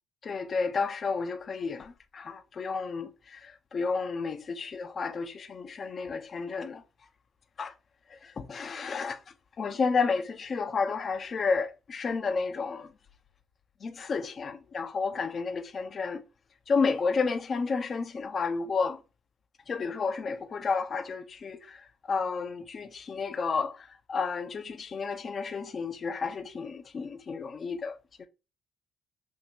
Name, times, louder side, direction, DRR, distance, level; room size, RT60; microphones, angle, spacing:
voice 1, 0.2-6.8 7.6-7.7 8.2-9.2 9.6-12.9 13.8-16.2 16.7-19.0 19.7-28.3, left 4 dB, 45° left, 0.6 m, -31 dB
4.5 x 2.8 x 2.8 m
hypercardioid pair, 55°, 0 cm